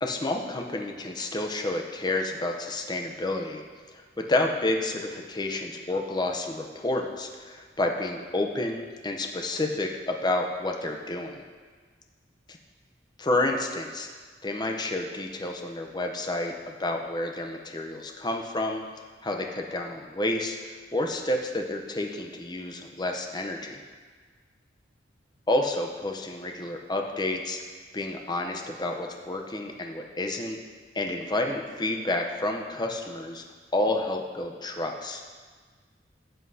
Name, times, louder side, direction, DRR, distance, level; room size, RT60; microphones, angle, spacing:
voice 1, 0.0-11.4 13.2-14.1 14.4-18.8 19.2-20.6 20.9-23.8 25.5-27.6 27.9-30.6 30.9-33.4 33.7-35.2, left 2 dB, 25° left, 2 dB, 0.7 m, -30 dB
12.5 x 8.0 x 2.7 m, 1.5 s
head